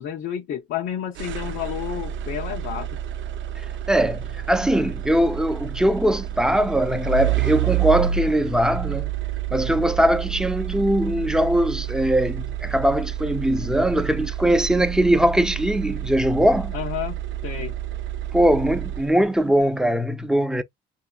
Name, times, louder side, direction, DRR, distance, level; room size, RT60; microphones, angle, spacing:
voice 1, 0.0-2.9 16.7-17.7, left 10 dB, 80° left, 0.8 m, -30 dB
sound 1, 1.2-19.4, right 11 dB, 75° right, 0.6 m, -29 dB
voice 2, 3.9-9.1 9.5-16.7 18.3-20.6, right 1 dB, 5° right, 0.6 m, -21 dB
5.5 x 2.6 x 2.4 m
cardioid pair, 90°, 20 cm